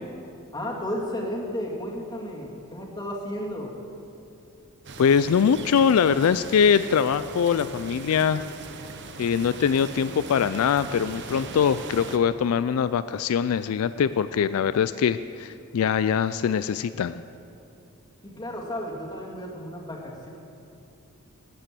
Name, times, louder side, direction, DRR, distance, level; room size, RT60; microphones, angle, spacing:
voice 1, 0.5-3.7 18.2-20.3, equal, 20° left, -3 dB, 2.2 m, -33 dB
sound 1, 4.8-12.2, right 4 dB, 55° right, 0.8 m, -40 dB
voice 2, 5.0-8.4 9.2-17.2, left 7 dB, 75° left, 13 dB, 0.3 m, -22 dB
13.0 x 9.6 x 7.6 m, 2.6 s
head